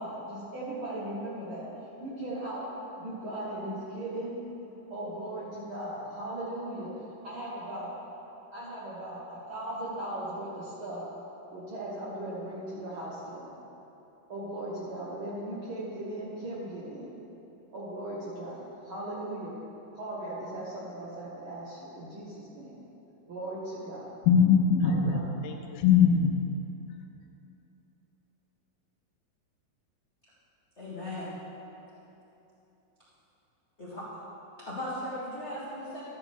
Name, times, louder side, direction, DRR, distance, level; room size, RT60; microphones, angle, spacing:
voice 1, 0.0-1.7 2.0-2.7 3.0-4.4 4.9-6.9 7.2-7.9 8.5-11.0 11.5-13.5 14.3-17.1 17.7-19.5 19.9-22.8 23.3-24.1 24.8-25.2, right 1 dB, 80° right, -8 dB, 1.1 m, -38 dB
voice 2, 24.3-26.4, left 6 dB, 85° left, 3 dB, 2.6 m, -22 dB
voice 3, 30.8-31.3 33.8-34.0 34.6-36.0, left 1 dB, 70° left, -10 dB, 0.6 m, -37 dB
13.0 x 9.0 x 3.6 m, 3.0 s
omnidirectional pair, 4.3 m